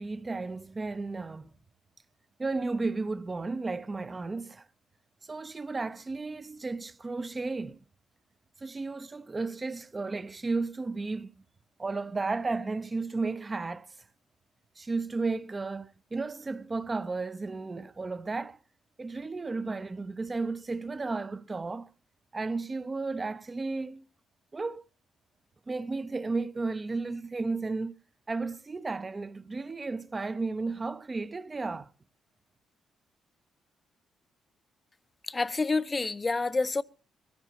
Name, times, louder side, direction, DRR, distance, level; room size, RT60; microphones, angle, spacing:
voice 1, 0.0-1.5 2.4-4.7 5.3-7.8 8.6-11.3 11.8-13.9 14.8-18.6 19.0-21.9 22.3-24.0 24.5-24.8 25.7-28.0 28.3-31.9, right 3 dB, 25° right, 0.7 m, -33 dB
voice 2, 35.2-36.8, left 3 dB, 25° left, 0.7 m, -28 dB
23.0 x 16.0 x 2.9 m
cardioid pair, 90°, 0 cm